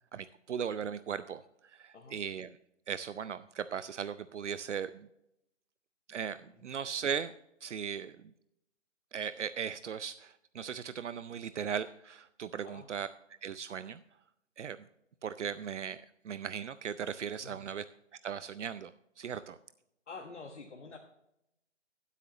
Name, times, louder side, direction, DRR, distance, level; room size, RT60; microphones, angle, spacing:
voice 1, 0.1-2.6 2.9-5.1 6.1-7.3 7.6-8.3 9.1-13.1 13.4-14.0 14.6-14.8 15.2-17.8 18.2-19.6, right 7 dB, 75° right, 14 dB, 0.6 m, -38 dB
voice 2, 20.1-21.0, left 4 dB, 70° left, 2 dB, 1.4 m, -47 dB
15.0 x 8.3 x 3.0 m, 0.80 s
hypercardioid pair, 155°, 36 cm